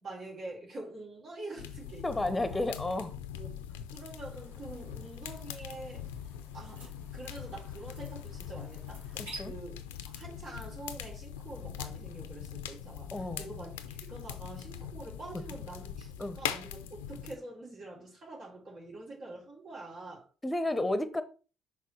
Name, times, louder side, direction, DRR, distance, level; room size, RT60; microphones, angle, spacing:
voice 1, 0.0-2.6 3.3-6.1 6.5-6.8 7.1-9.8 10.0-20.2, right 2 dB, 55° right, 3.4 m, -46 dB
sound 1, 1.6-17.3, left 9 dB, 80° left, 0.5 m, -42 dB
voice 2, 2.0-3.2 9.2-9.5 13.1-13.5 16.2-16.4 20.4-21.2, left 2 dB, 15° left, 0.9 m, -32 dB
sound 2, 4.3-9.4, right 2 dB, 85° right, 2.3 m, -52 dB
6.0 x 3.8 x 4.3 m
hypercardioid pair, 50°, 0 cm